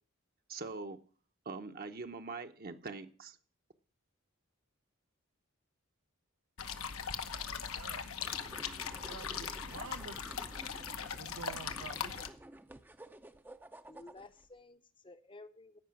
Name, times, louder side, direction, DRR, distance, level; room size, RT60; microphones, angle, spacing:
voice 1, 0.5-1.0 1.4-3.4, right 3 dB, 45° right, 6 dB, 0.9 m, -43 dB
sound 1, 6.6-12.3, left 7 dB, 80° left, 1.0 m, -40 dB
voice 2, 7.5-8.1 9.1-10.3 11.2-12.2, right 5 dB, 75° right, 8 dB, 0.6 m, -49 dB
sound 2, 8.2-14.5, right 1 dB, 10° right, 0.6 m, -53 dB
voice 3, 13.9-15.8, left 2 dB, 25° left, 11 dB, 0.7 m, -54 dB
13.5 x 5.6 x 7.1 m, 0.41 s
head